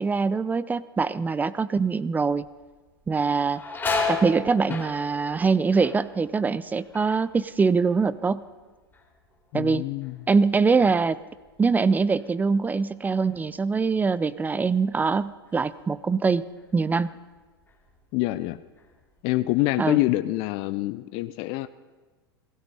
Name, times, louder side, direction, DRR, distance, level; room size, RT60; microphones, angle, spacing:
voice 1, 0.0-2.5 3.1-3.6 4.1-8.4 9.5-9.9 10.3-11.2 11.6-16.4 16.7-17.1 19.8-20.0, right 4 dB, 15° right, 17 dB, 0.4 m, -23 dB
sound 1, 2.3-2.7 3.0-8.6 8.9-9.5 10.0-12.9 13.3-13.4 14.4-14.6 15.0-16.1 16.6-16.7 17.3-18.0 18.3-19.5, left 3 dB, 15° left, 3.3 m, -35 dB
voice 2, 9.5-10.2 18.1-18.6 19.2-21.7, left 18 dB, 50° left, 13 dB, 0.6 m, -26 dB
16.0 x 16.0 x 4.2 m, 1.3 s
hypercardioid pair, 100°, 13 cm